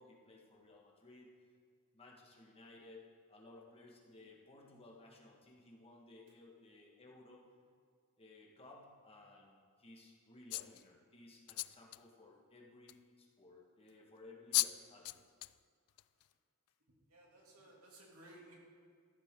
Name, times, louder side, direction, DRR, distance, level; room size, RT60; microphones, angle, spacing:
voice 1, 0.0-1.3 1.9-3.0 3.3-7.4 8.2-15.2, left 2 dB, 25° left, -2 dB, 1.8 m, -58 dB
sound 1, 10.5-10.8 11.5-12.0 12.9-13.0 14.2-14.3 14.5-14.7 15.0-15.5 16.0-16.2, left 18 dB, 85° left, 0.3 m, -35 dB
voice 2, 17.1-18.6, right 1 dB, 75° right, -2 dB, 2.9 m, -58 dB
13.5 x 12.5 x 3.9 m, 2.1 s
head